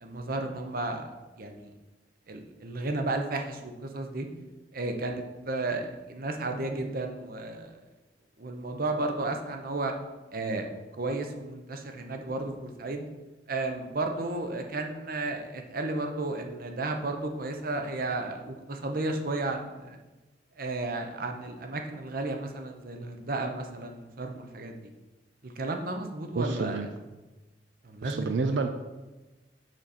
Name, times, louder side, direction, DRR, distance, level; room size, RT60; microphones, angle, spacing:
voice 1, 0.0-1.1 1.4-1.7 2.3-4.3 4.7-7.8 8.4-9.9 10.3-10.7 11.0-13.1 13.5-20.0 20.6-24.8 25.4-26.8 27.8-28.3, right 2 dB, 55° right, 5 dB, 0.8 m, -33 dB
voice 2, 26.3-26.9 28.0-28.7, right 4 dB, 85° right, 7 dB, 0.5 m, -29 dB
6.2 x 6.1 x 4.2 m, 1.1 s
head